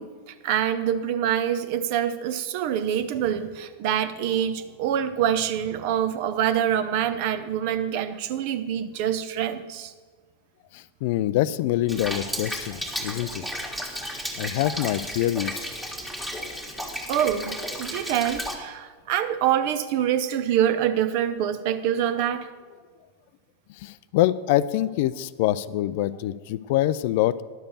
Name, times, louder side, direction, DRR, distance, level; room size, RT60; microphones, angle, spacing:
voice 1, 0.0-9.9 17.1-22.5, right 10 dB, 45° right, 11 dB, 0.7 m, -25 dB
voice 2, 10.7-13.4 14.4-15.7 16.8-16.9 23.8-27.4, left 14 dB, 50° left, 17 dB, 0.3 m, -25 dB
Rain, 11.9-18.5, equal, 5° right, 1.7 m, -33 dB
11.0 x 7.0 x 6.7 m, 1.5 s
figure-of-eight pair, 90°, 0 cm